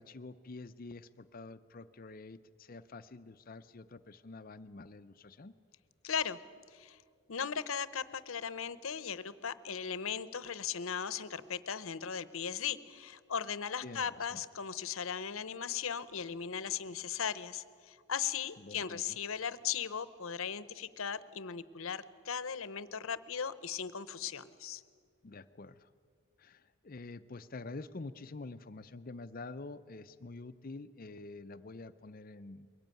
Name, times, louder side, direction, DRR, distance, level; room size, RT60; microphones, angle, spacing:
voice 1, 0.0-5.5 13.8-14.4 18.6-19.2 25.2-25.9 26.4-32.7, left 3 dB, 40° left, 13 dB, 0.5 m, -47 dB
voice 2, 6.0-6.4 6.7-7.0 7.3-24.8, left 7 dB, 70° left, 16 dB, 0.8 m, -38 dB
22.5 x 18.0 x 9.1 m, 2.1 s
head